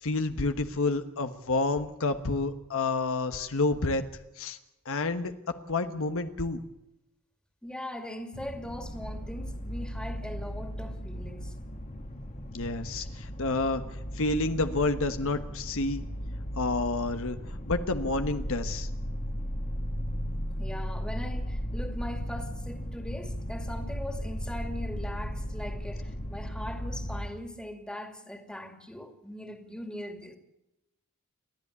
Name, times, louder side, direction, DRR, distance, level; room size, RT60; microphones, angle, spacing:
voice 1, 0.0-4.1 4.4-4.6 4.8-5.3 5.7-6.6 12.5-13.8 14.1-16.0 16.6-17.4 17.7-18.9, left 3 dB, 65° left, 1.2 m, -29 dB
voice 2, 7.6-11.5 20.6-30.4, left 1 dB, 5° left, 2.5 m, -40 dB
sound 1, 8.3-27.3, equal, 35° left, 1.8 m, -36 dB
30.0 x 11.5 x 8.2 m
head